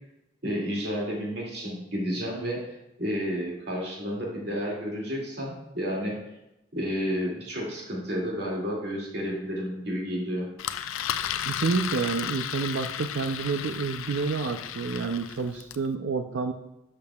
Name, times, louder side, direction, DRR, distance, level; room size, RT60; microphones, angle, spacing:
voice 1, 0.4-6.2 6.7-10.5, equal, 55° right, -3 dB, 2.2 m, -31 dB
Engine, 10.6-15.9, left 9 dB, 90° left, 0.4 m, -34 dB
voice 2, 11.4-16.5, right 4 dB, 70° right, 5 dB, 0.5 m, -29 dB
10.5 x 6.7 x 2.3 m, 0.92 s
head